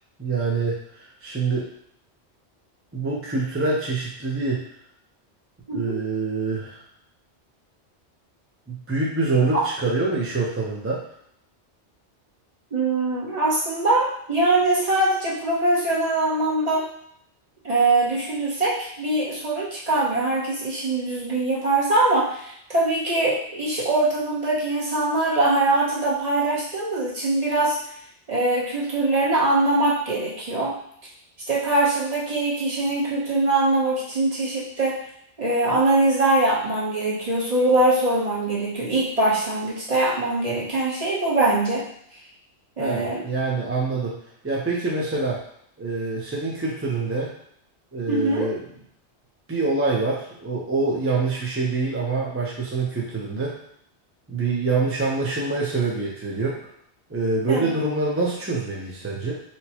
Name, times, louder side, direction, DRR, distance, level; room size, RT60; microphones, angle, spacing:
voice 1, 0.2-1.7 2.9-4.6 5.7-6.8 8.7-11.0 42.8-44.2 44.4-45.4 45.8-47.3 47.9-48.6 49.5-53.6 54.3-56.6 57.1-59.3, right 3 dB, 20° right, -4 dB, 0.4 m, -25 dB
voice 2, 12.7-16.9 17.6-27.8 28.3-30.8 31.5-35.0 35.4-41.8 42.8-43.2 48.1-48.5 57.5-57.7, right 2 dB, 40° right, -6 dB, 0.9 m, -22 dB
4.4 x 2.2 x 2.8 m, 0.68 s
omnidirectional pair, 1.1 m